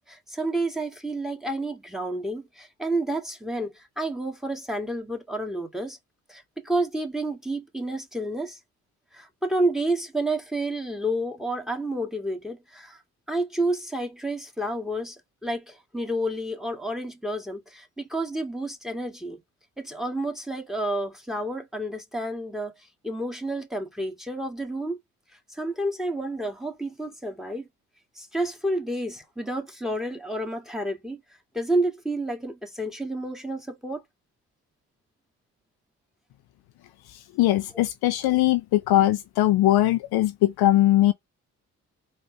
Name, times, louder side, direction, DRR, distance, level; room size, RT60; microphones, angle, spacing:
voice 1, 0.0-6.0 6.3-8.6 9.1-13.0 13.3-19.4 19.8-22.7 23.0-25.0 25.5-27.7 28.2-31.2 31.5-34.0 37.7-37.8, right 1 dB, ahead, 1.7 m, -30 dB
voice 2, 37.4-41.1, left 14 dB, 60° left, 0.6 m, -20 dB
4.3 x 3.2 x 3.8 m
hypercardioid pair, 45°, 42 cm